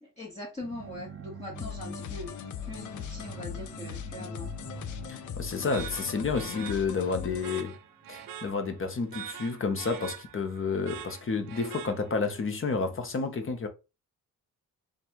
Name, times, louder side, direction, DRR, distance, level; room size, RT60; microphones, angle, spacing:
voice 1, 0.0-2.3 2.6-4.5, left 2 dB, 20° left, 1.3 m, -41 dB
sound 1, 0.6-8.4, right 5 dB, 35° right, 0.9 m, -46 dB
sound 2, 1.5-7.6, left 10 dB, 60° left, 0.5 m, -39 dB
voice 2, 5.1-7.8 8.1-13.7, left 4 dB, 40° left, 1.0 m, -30 dB
sound 3, 5.7-12.4, right 10 dB, 80° right, 0.6 m, -44 dB
3.2 x 2.5 x 4.4 m
cardioid pair, 80°, 34 cm